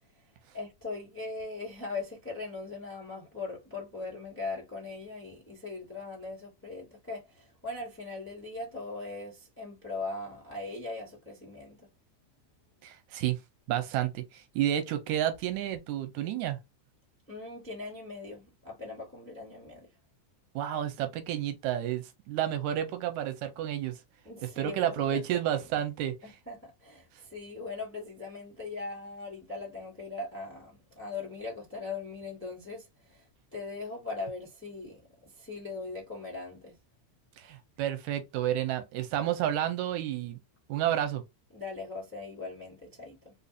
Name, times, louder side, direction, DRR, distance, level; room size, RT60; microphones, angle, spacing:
voice 1, 0.5-11.9 17.3-19.9 24.2-25.3 26.2-33.3 33.5-36.7 41.5-43.3, left 3 dB, 5° left, 1.0 m, -40 dB
voice 2, 12.8-13.4 13.7-16.6 20.6-24.0 24.6-26.1 37.4-40.4 40.7-41.2, right 11 dB, 85° right, 2.0 m, -30 dB
4.4 x 2.7 x 2.4 m
omnidirectional pair, 3.4 m